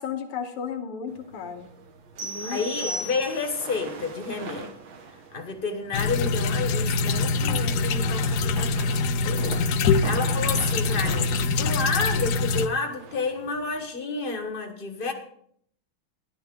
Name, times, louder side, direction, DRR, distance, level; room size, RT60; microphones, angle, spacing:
voice 1, 0.0-1.7 2.2-3.1, left 7 dB, 85° left, 5 dB, 2.1 m, -34 dB
sound 1, 1.1-13.9, right 5 dB, 65° right, 1.9 m, -44 dB
sound 2, 2.2-3.7, right 1 dB, 35° right, 1.7 m, -35 dB
voice 2, 2.4-4.7 5.3-9.0 9.2-15.1, left 4 dB, 30° left, 5 dB, 1.0 m, -30 dB
sound 3, 5.9-12.7, left 4 dB, 70° left, 1.0 m, -24 dB
13.0 x 11.0 x 3.7 m, 0.65 s
omnidirectional pair, 2.4 m